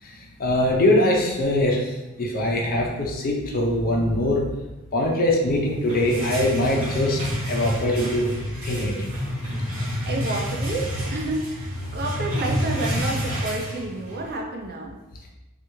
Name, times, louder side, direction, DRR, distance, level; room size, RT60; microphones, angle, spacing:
voice 1, 0.4-1.9 2.2-4.4 4.9-7.2 7.5-8.3 8.6-9.1, left 1 dB, 40° left, -1 dB, 0.5 m, -22 dB
sound 1, 5.6-14.3, equal, 60° right, 1.2 m, -29 dB
voice 2, 10.1-14.9, right 2 dB, 45° right, 0 dB, 0.5 m, -30 dB
3.3 x 2.4 x 3.0 m, 1.1 s
head